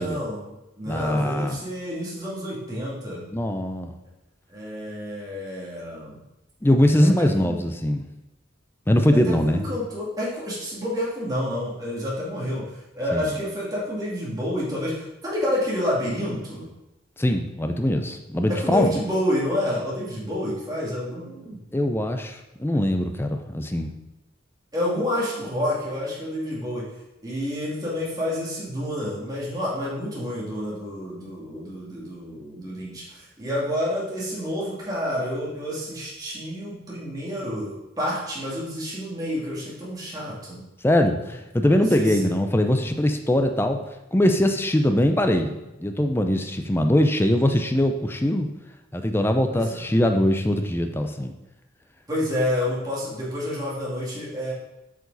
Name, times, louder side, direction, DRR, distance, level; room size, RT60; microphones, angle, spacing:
voice 1, 0.0-3.2 4.5-6.2 7.0-7.6 9.1-16.7 18.5-21.6 24.7-26.9 27.2-40.6 41.7-42.3 49.5-49.9 52.1-54.5, left 1 dB, 20° right, -6 dB, 2.3 m, -29 dB
voice 2, 0.8-1.6 3.3-3.9 6.6-8.0 8.9-9.6 13.1-13.3 17.2-19.0 21.7-23.9 40.8-43.8 44.1-48.5 48.9-51.3, left 1 dB, 10° left, 6 dB, 0.5 m, -22 dB
8.1 x 5.0 x 4.0 m, 0.96 s
head